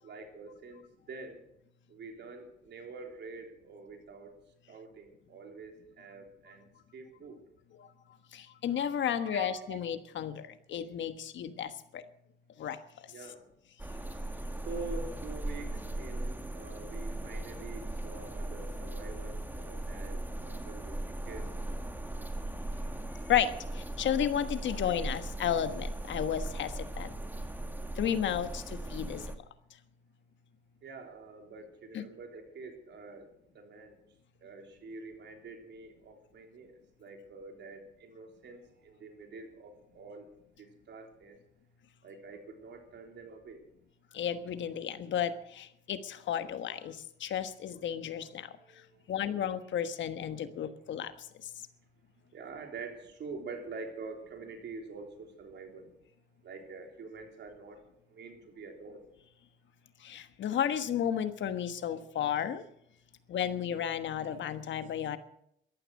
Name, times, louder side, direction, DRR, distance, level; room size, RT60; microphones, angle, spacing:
voice 1, 0.0-1.4 1.9-4.3 4.7-6.7 6.9-7.4 9.2-9.8 13.1-13.5 14.6-21.5 30.8-34.0 34.4-36.7 37.0-40.3 40.6-41.4 42.0-43.6 48.6-49.1 52.3-55.9 56.4-57.8 58.1-59.0, right 4 dB, 65° right, 4 dB, 3.6 m, -46 dB
voice 2, 8.3-12.1 12.6-13.1 23.3-27.1 27.9-29.3 31.9-32.0 44.1-51.5 60.0-62.6 63.3-65.2, left 9 dB, 70° left, 11 dB, 1.3 m, -33 dB
sound 1, 13.8-29.4, right 1 dB, 10° right, 1.8 m, -38 dB
14.5 x 12.5 x 6.5 m, 0.73 s
cardioid pair, 90°, 20 cm